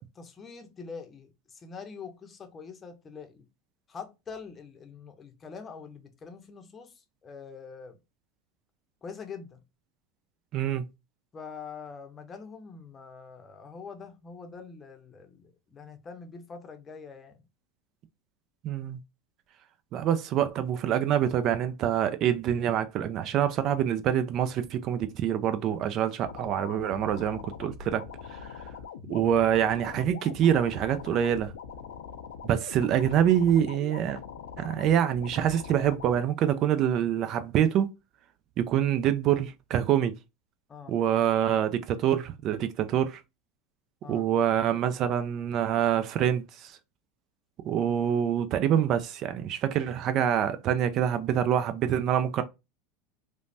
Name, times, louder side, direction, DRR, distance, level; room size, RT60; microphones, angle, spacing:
voice 1, 0.1-3.4 3.9-6.9 7.2-8.0 9.0-9.6 11.3-17.4 40.7-40.9 44.0-44.3, left 5 dB, 25° left, 0.6 m, -44 dB
voice 2, 10.5-10.9 18.6-19.0 19.9-28.0 28.3-28.5 29.1-31.5 32.4-34.2 34.6-37.9 38.6-40.1 40.9-43.2 44.1-46.8 47.6-52.4, right 10 dB, 50° right, 0.4 m, -26 dB
sound 1, 26.2-36.2, left 6 dB, 90° left, 0.4 m, -43 dB
3.2 x 2.1 x 2.6 m
hypercardioid pair, 105°, 0 cm